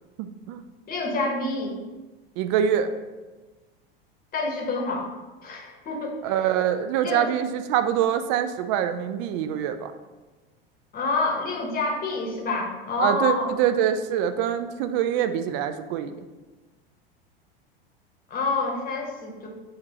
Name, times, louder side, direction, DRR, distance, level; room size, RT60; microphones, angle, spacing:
voice 1, 0.2-0.6 2.4-2.9 6.2-9.9 13.0-16.1, right 9 dB, 50° right, 9 dB, 0.4 m, -24 dB
voice 2, 0.9-1.8 4.3-5.1 5.4-6.2 7.0-7.3 10.9-13.5 18.3-19.5, left 3 dB, 30° left, 0 dB, 1.0 m, -27 dB
6.4 x 2.4 x 2.9 m, 1.2 s
hypercardioid pair, 90°, 29 cm